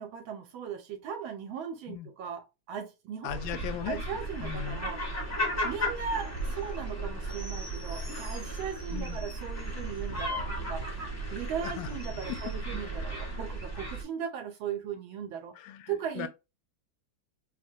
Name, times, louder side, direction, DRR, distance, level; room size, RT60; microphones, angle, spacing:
voice 1, 0.0-15.6 15.9-16.3, right 7 dB, 75° right, 1.3 m, -38 dB
voice 2, 3.2-4.0 4.4-4.8 8.9-9.2 11.6-11.9 12.3-12.4 15.6-15.9 16.2-16.3, left 11 dB, 75° left, 1.2 m, -37 dB
sound 1, 3.3-14.0, right 1 dB, 25° left, 0.3 m, -35 dB
4.9 x 2.1 x 2.7 m
omnidirectional pair, 2.3 m